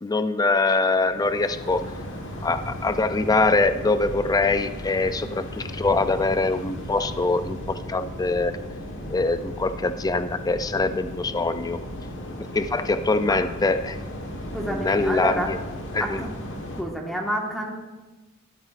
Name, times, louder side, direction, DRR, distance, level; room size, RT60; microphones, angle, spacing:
voice 1, 0.0-1.8 2.4-8.6 9.1-11.8 12.5-14.0 14.6-15.6 15.9-16.2, left 3 dB, 15° left, 11 dB, 0.4 m, -23 dB
sound 1, 0.9-16.8, equal, 60° left, 1.4 m, -35 dB
voice 2, 14.5-15.5 16.0-16.3 16.8-17.7, equal, ahead, 0 dB, 1.5 m, -28 dB
13.0 x 12.0 x 2.5 m, 1.2 s
head